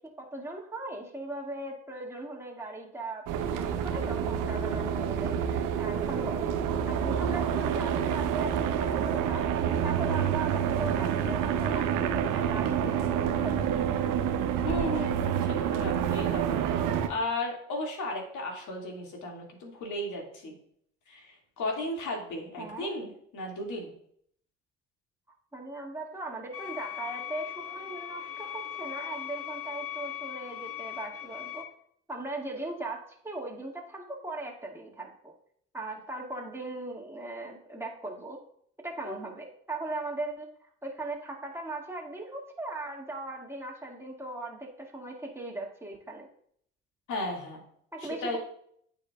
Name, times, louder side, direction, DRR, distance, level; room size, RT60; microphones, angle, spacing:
voice 1, 0.2-6.5 6.9-13.7 22.6-22.9 25.5-31.7 32.1-33.0 33.2-35.3 35.7-38.4 38.8-40.5 40.8-46.3 47.9-48.4, right 2 dB, 5° right, -1 dB, 2.2 m, -39 dB
sound 1, 3.3-17.1, right 8 dB, 65° right, 0.8 m, -28 dB
voice 2, 14.6-20.5 21.1-23.9 39.0-39.2 47.1-47.6 48.2-48.4, left 1 dB, 60° left, 0 dB, 2.4 m, -35 dB
sound 2, 26.5-31.6, left 11 dB, 40° left, 1.8 m, -39 dB
13.5 x 4.5 x 2.4 m, 0.66 s
figure-of-eight pair, 45°, 35 cm